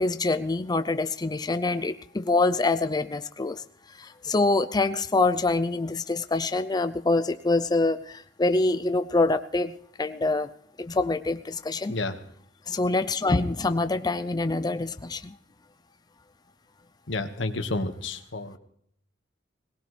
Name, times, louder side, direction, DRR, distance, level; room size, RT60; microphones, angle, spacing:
voice 1, 0.0-3.6 4.0-9.7 10.0-10.5 10.8-11.9 12.7-15.3, left 3 dB, 20° left, 11 dB, 0.5 m, -25 dB
voice 2, 17.1-18.6, left 2 dB, 85° left, 8 dB, 1.6 m, -30 dB
21.0 x 19.0 x 3.3 m, 0.67 s
head